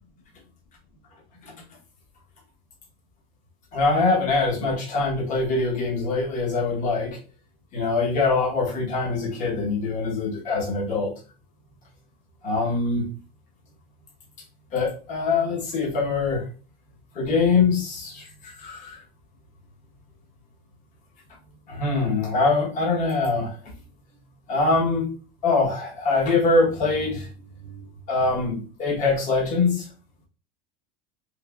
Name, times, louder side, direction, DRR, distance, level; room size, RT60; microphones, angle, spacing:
voice 1, 3.7-7.2 7.7-11.1 12.4-13.1 14.7-16.4 17.1-19.0 21.7-23.5 24.5-25.1 25.4-27.3 27.7-27.8 28.1-29.8, left 3 dB, 40° left, 1.1 m, -23 dB
3.2 x 3.0 x 2.3 m
cardioid pair, 150°, 20 cm